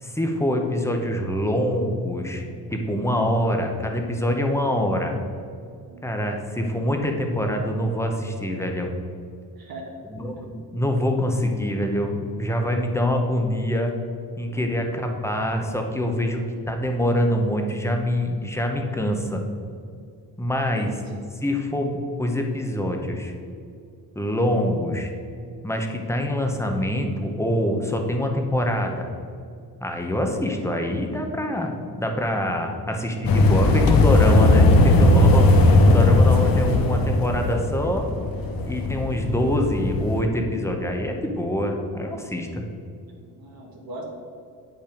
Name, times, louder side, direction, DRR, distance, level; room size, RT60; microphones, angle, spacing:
voice 1, 0.0-5.1 6.0-8.9 10.1-13.9 14.4-16.4 16.7-19.4 20.4-21.0 21.3-23.3 24.1-25.1 25.6-29.1 29.8-35.5 35.9-38.0 38.7-42.6, equal, 5° left, 3 dB, 0.9 m, -25 dB
voice 2, 9.6-9.9 14.5-14.7 20.7-21.3 32.7-32.9 38.7-39.0 43.1-44.0, right 2 dB, 65° right, -1 dB, 1.4 m, -42 dB
sound 1, 33.2-40.2, left 2 dB, 65° left, 0.9 m, -18 dB
8.8 x 5.7 x 5.1 m, 2.4 s
cardioid pair, 135°, 38 cm